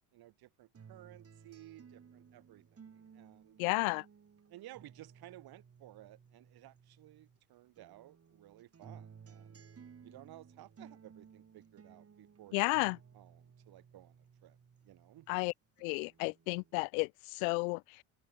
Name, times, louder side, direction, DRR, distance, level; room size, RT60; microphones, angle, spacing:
voice 1, 0.1-3.7 4.5-9.6 10.0-14.6 14.8-15.3, right 15 dB, 60° right, 3.5 m, -56 dB
sound 1, 0.7-7.4 7.8-15.4 15.8-16.7, right 6 dB, 35° right, 5.2 m, -58 dB
voice 2, 3.6-4.0 12.5-13.0 15.3-15.5 15.8-17.8, left 33 dB, 75° left, 1.3 m, -32 dB
hypercardioid pair, 70°, 43 cm